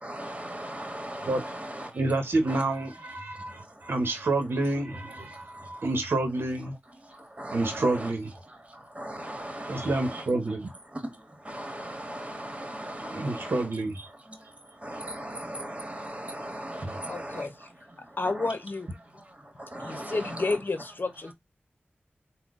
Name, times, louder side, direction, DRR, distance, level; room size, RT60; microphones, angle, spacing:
voice 1, 0.0-1.9 7.4-8.1 8.7-10.2 10.9-11.1 11.4-13.6 14.3-14.4 14.8-17.5 18.2-18.5 19.6-20.6, right 1 dB, 35° right, 1.5 m, -38 dB
voice 2, 1.9-6.7 7.5-8.3 9.7-10.7 13.1-14.1 16.8-17.0, right 2 dB, 85° right, 0.9 m, -28 dB
voice 3, 17.1-17.5 18.2-18.9 19.8-21.3, left 3 dB, 60° left, 0.8 m, -30 dB
3.8 x 2.3 x 3.6 m
cardioid pair, 40°, 4 cm